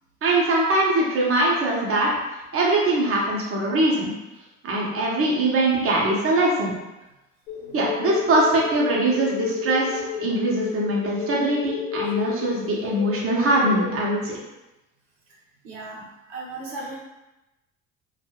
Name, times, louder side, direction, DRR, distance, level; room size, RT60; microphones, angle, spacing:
voice 1, 0.2-2.1 2.5-4.1 4.6-6.7 7.7-14.3, right 1 dB, 35° right, -3 dB, 0.9 m, -22 dB
sound 1, 7.5-13.9, left 5 dB, 80° left, 0.8 m, -31 dB
voice 2, 15.6-16.0 16.3-17.0, right 2 dB, 75° right, -4 dB, 0.8 m, -36 dB
2.6 x 2.4 x 2.9 m, 0.98 s
hypercardioid pair, 60°, 40 cm